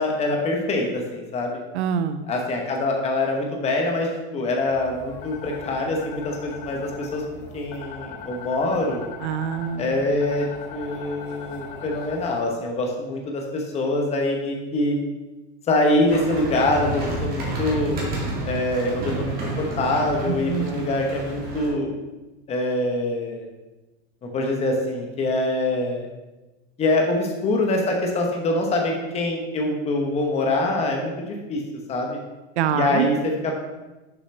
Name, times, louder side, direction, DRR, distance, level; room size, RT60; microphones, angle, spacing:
voice 1, 0.0-1.5 2.3-9.0 9.8-15.0 15.7-18.0 18.4-21.9 22.5-23.4 24.3-26.1 26.8-31.6 31.9-32.2 32.7-33.6, left 2 dB, 20° left, 1 dB, 1.0 m, -24 dB
voice 2, 1.7-2.3 9.2-10.0 20.3-20.9 32.6-33.1, right 8 dB, 80° right, 12 dB, 0.6 m, -25 dB
sound 1, 4.6-12.4, left 4 dB, 60° left, 1.8 m, -40 dB
sound 2, 16.1-21.7, right 2 dB, 25° right, 1.9 m, -30 dB
6.9 x 5.5 x 3.2 m, 1.1 s
supercardioid pair, 140°, 33 cm